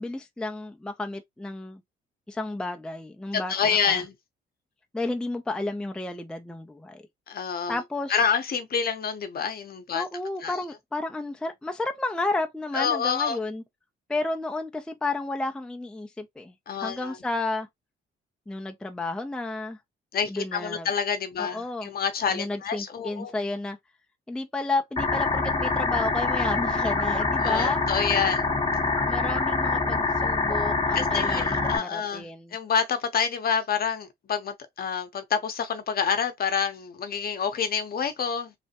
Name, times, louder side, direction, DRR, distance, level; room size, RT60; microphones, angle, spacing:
voice 1, 0.0-1.8 2.3-4.0 4.9-7.0 7.7-8.3 9.9-13.6 14.1-17.7 18.5-19.8 20.3-20.9 21.4-21.9 22.3-23.8 24.3-27.8 28.1-28.3 29.1-32.6, left 2 dB, 5° left, 0.4 m, -32 dB
voice 2, 3.3-4.1 7.3-7.8 8.1-10.0 10.4-10.6 12.7-13.4 16.7-17.2 20.1-23.3 27.4-28.5 30.9-38.5, left 6 dB, 50° left, 0.8 m, -28 dB
sound 1, 25.0-31.8, left 3 dB, 20° left, 0.9 m, -25 dB
3.2 x 2.1 x 2.8 m
cardioid pair, 90°, 20 cm